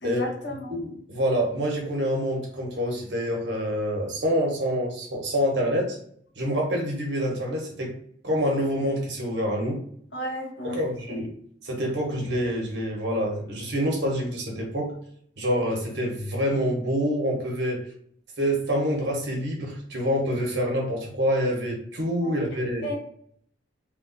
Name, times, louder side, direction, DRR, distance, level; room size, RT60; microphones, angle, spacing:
voice 1, 0.0-0.8 10.1-10.8 11.1-11.2 22.2-22.3 22.8-23.0, left 1 dB, 85° left, -2 dB, 1.3 m, -33 dB
voice 2, 0.7-6.0 6.4-7.9 8.2-9.8 10.6-11.3 11.6-14.9 15.4-17.8 18.4-22.9, equal, 80° right, 0 dB, 1.2 m, -26 dB
3.3 x 2.3 x 3.9 m, 0.63 s
head